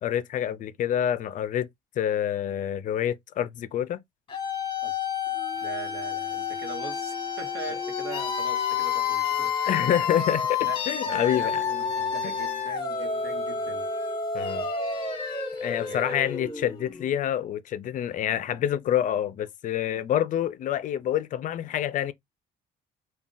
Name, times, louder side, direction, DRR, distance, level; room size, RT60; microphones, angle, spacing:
voice 1, 0.0-1.7 2.0-4.0 9.7-11.6 14.3-14.7 15.6-22.1, left 10 dB, 50° left, 0.4 m, -27 dB
sound 1, 4.3-17.1, left 6 dB, 30° left, 0.9 m, -29 dB
voice 2, 5.6-9.9 10.6-13.9 15.8-16.2, right 5 dB, 90° right, 1.0 m, -41 dB
2.4 x 2.2 x 3.8 m
cardioid pair, 110°, 17 cm